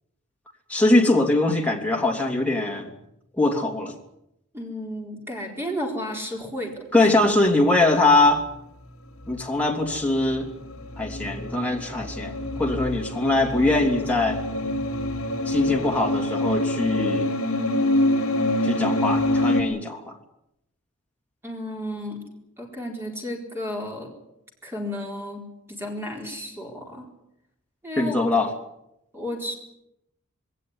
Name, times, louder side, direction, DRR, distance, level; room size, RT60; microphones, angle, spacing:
voice 1, 0.7-2.9 3.4-3.9 6.9-8.4 9.3-10.5 11.0-12.3 12.6-14.4 15.4-17.3 18.6-20.1 28.0-28.5, left 2 dB, 5° left, 0 dB, 3.1 m, -22 dB
voice 2, 4.5-6.8 21.4-22.2 22.6-24.1 24.6-27.1 27.8-28.2 29.1-29.6, left 1 dB, 10° right, 1 dB, 4.2 m, -33 dB
sound 1, 9.2-19.6, left 1 dB, 65° left, 3.5 m, -26 dB
21.0 x 17.5 x 9.8 m, 0.83 s
head